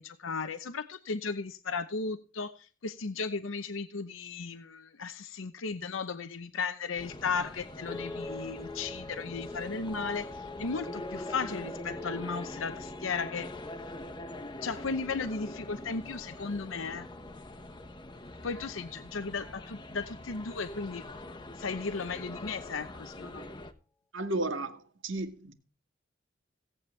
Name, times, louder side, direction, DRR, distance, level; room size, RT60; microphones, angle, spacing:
voice 1, 0.0-13.5 14.6-17.1 18.4-21.0 21.6-23.5, left 4 dB, 75° left, 0.8 m, -35 dB
sound 1, 7.0-23.7, left 1 dB, 25° left, 1.2 m, -44 dB
sound 2, 7.9-18.2 18.5-19.1, left 2 dB, 5° left, 0.8 m, -45 dB
voice 2, 24.1-25.5, right 2 dB, 70° right, 2.1 m, -33 dB
17.0 x 8.6 x 3.2 m
head